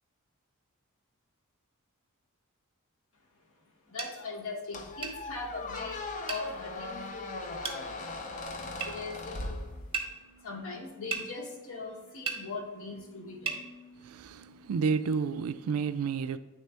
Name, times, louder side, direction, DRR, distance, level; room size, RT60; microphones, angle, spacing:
voice 1, 3.9-9.8 10.0-14.3, left 3 dB, 65° left, 1.1 m, -41 dB
sound 1, 4.0-4.1 5.0-5.2 6.3-6.5 7.6-7.8 8.8-8.9 9.9-10.1 11.1-11.3 12.3-12.4 13.5-13.6, right 6 dB, 25° right, 0.7 m, -34 dB
Squeak, 4.7-10.2, left 2 dB, 35° left, 0.5 m, -39 dB
sound 2, 6.1-15.5, right 1 dB, 15° left, 0.8 m, -59 dB
voice 2, 14.0-16.4, right 5 dB, 75° right, 0.4 m, -30 dB
8.8 x 3.3 x 3.3 m
head